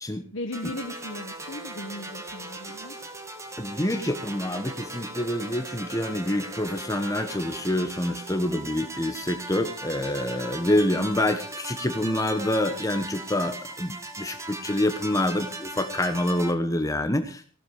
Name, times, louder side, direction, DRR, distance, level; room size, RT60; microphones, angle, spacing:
voice 1, 0.3-3.0, left 1 dB, 65° left, 3 dB, 1.5 m, -37 dB
sound 1, 0.5-16.5, right 2 dB, 15° right, 1.9 m, -38 dB
voice 2, 3.6-17.5, left 1 dB, 15° left, 7 dB, 1.2 m, -27 dB
18.0 x 13.0 x 4.9 m, 0.41 s
head